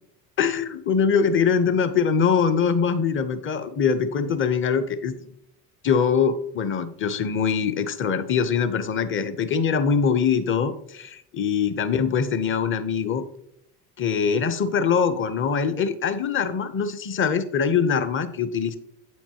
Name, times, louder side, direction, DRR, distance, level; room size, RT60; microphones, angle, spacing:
voice 1, 0.4-5.1 5.8-13.2 14.0-18.8, left 6 dB, 25° left, 11 dB, 0.8 m, -23 dB
8.6 x 7.2 x 2.9 m, 0.75 s
hypercardioid pair, 75°, 49 cm